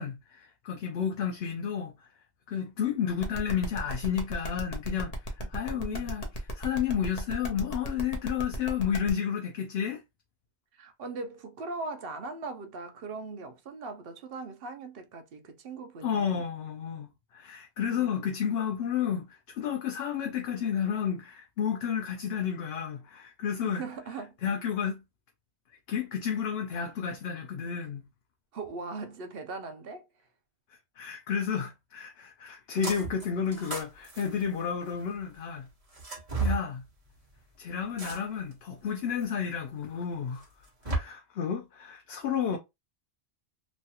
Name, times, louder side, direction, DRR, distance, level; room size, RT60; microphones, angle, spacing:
voice 1, 0.0-2.1 2.5-10.0 16.0-23.8 24.4-25.0 25.9-28.1 31.0-35.7 36.4-36.8 37.6-40.4 40.8-42.6, left 7 dB, 70° left, 0.8 m, -31 dB
sound 1, 3.2-9.1, equal, 40° left, 0.7 m, -37 dB
voice 2, 5.7-6.2 10.8-16.5 17.8-18.3 23.6-24.4 26.8-26.9 28.5-30.1 42.5-42.6, right 3 dB, 65° right, 0.8 m, -40 dB
sound 2, 32.8-33.3 33.5-35.1 35.9-36.6 38.0-38.5 39.2-39.3 40.4-41.0, right 4 dB, 30° right, 1.3 m, -33 dB
3.1 x 2.3 x 2.7 m
omnidirectional pair, 1.1 m